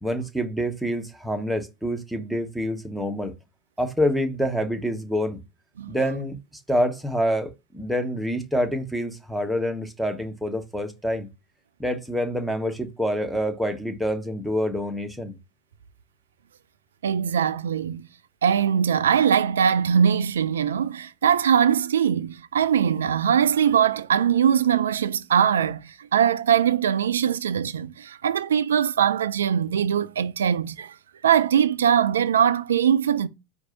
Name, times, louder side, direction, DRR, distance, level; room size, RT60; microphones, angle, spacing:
voice 1, 0.0-3.3 3.8-5.4 5.9-6.4 6.7-11.3 11.8-15.4, equal, ahead, 1.1 m, -26 dB
voice 2, 17.0-18.1 18.4-30.9 31.2-33.3, right 8 dB, 80° right, 0.3 m, -21 dB
4.6 x 2.5 x 3.8 m
hypercardioid pair, 85°, 0 cm